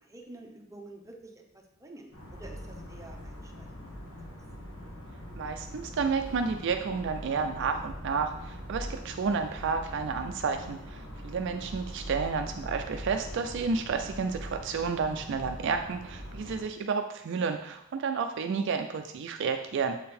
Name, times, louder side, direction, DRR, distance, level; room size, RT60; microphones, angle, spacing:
voice 1, 0.0-3.9, right 2 dB, 15° right, 1 dB, 0.8 m, -49 dB
sound 1, 2.1-16.6, equal, 70° left, 1.6 m, -42 dB
voice 2, 5.4-20.1, right 5 dB, 60° right, 6 dB, 0.4 m, -31 dB
7.3 x 3.8 x 4.2 m, 0.81 s
head